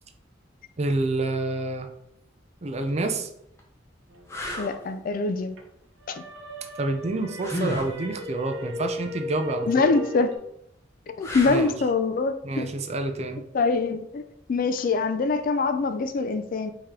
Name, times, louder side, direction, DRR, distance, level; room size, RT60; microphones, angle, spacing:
voice 1, 0.8-1.9 2.6-3.3 6.8-9.9 11.5-11.7 12.4-13.4, right 2 dB, 35° right, 6 dB, 0.5 m, -28 dB
sound 1, 2.7-2.9 3.6-3.7 4.3-4.8 7.4-7.9 11.2-11.8 14.8-15.0, left 1 dB, 15° left, 0.8 m, -32 dB
sound 2, 4.1-5.6 6.0-10.4, equal, 85° right, 0.9 m, -37 dB
voice 2, 4.6-5.6 6.1-6.2 9.6-10.3 11.1-12.7 13.5-14.2 14.5-16.7, left 4 dB, 45° left, 10 dB, 0.3 m, -24 dB
4.7 x 2.9 x 3.6 m, 0.77 s
head